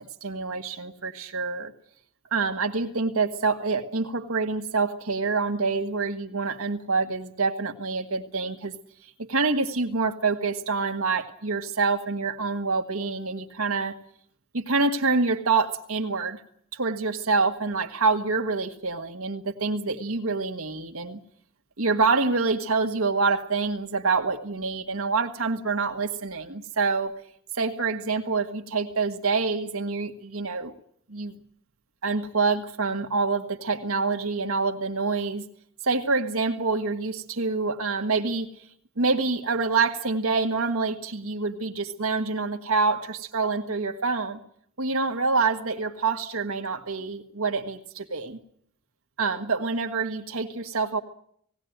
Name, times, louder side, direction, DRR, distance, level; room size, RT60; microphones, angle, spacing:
voice 1, 0.0-1.7 2.3-8.7 9.2-13.9 14.5-16.4 16.7-21.2 21.8-27.1 27.5-30.7 31.1-31.3 32.0-35.4 35.8-38.5 39.0-44.4 44.8-48.4 49.2-51.0, right 4 dB, 85° right, 4 dB, 1.6 m, -26 dB
18.5 x 17.5 x 9.3 m, 0.68 s
head